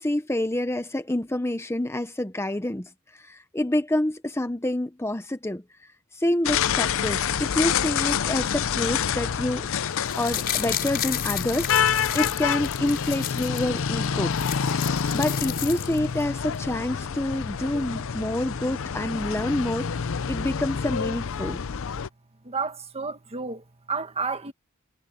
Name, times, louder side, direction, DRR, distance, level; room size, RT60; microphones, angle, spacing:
voice 1, 0.0-5.6 6.1-9.7 10.2-14.7 15.1-20.0 20.3-21.6, left 1 dB, 10° left, 0.9 m, -28 dB
sound 1, 6.5-22.1, left 7 dB, 65° left, 0.6 m, -27 dB
sound 2, 9.9-13.6 14.0-14.1 14.3-16.2 16.5-16.6, left 11 dB, 45° left, 5.2 m, -32 dB
voice 2, 22.4-24.5, right 4 dB, 30° right, 1.6 m, -32 dB
head